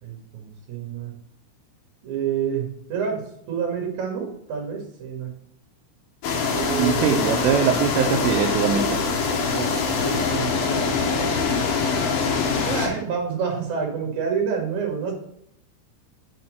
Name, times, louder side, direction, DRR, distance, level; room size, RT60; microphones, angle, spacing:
voice 1, 0.0-1.1 2.0-3.2 3.5-5.3 6.5-7.2 8.2-8.4 9.5-10.9 12.5-15.1, right 6 dB, 50° right, 1 dB, 2.6 m, -28 dB
sound 1, 6.2-12.9, left 5 dB, 70° left, 2.3 m, -23 dB
voice 2, 6.8-9.0, right 8 dB, 80° right, 3 dB, 2.5 m, -22 dB
6.9 x 4.4 x 6.4 m, 0.72 s
omnidirectional pair, 5.8 m